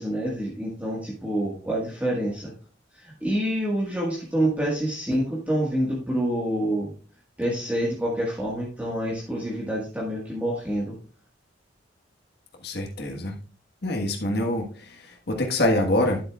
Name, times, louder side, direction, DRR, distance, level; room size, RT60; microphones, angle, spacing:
voice 1, 0.0-2.5 2.9-6.9 7.4-10.9, right 1 dB, 10° right, -5 dB, 1.6 m, -27 dB
voice 2, 12.6-13.3 13.8-16.2, left 1 dB, 55° left, 2 dB, 1.5 m, -25 dB
10.0 x 7.9 x 2.4 m, 0.40 s
head